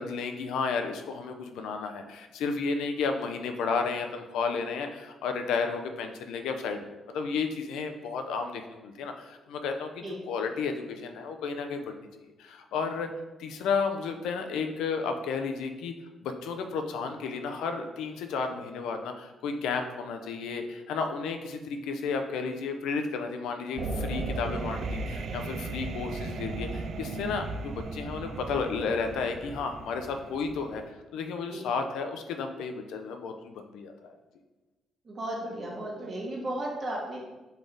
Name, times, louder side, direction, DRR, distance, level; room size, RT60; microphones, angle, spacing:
voice 1, 0.0-12.1 12.4-13.1 13.4-15.9 16.2-30.8 31.1-34.2, left 5 dB, 85° left, 5 dB, 0.4 m, -32 dB
sound 1, 23.8-30.9, right 3 dB, 55° right, 0.3 m, -36 dB
voice 2, 35.0-37.2, right 1 dB, 40° right, -3 dB, 1.3 m, -35 dB
4.0 x 3.3 x 3.8 m, 1.1 s
cardioid pair, 90°, 0 cm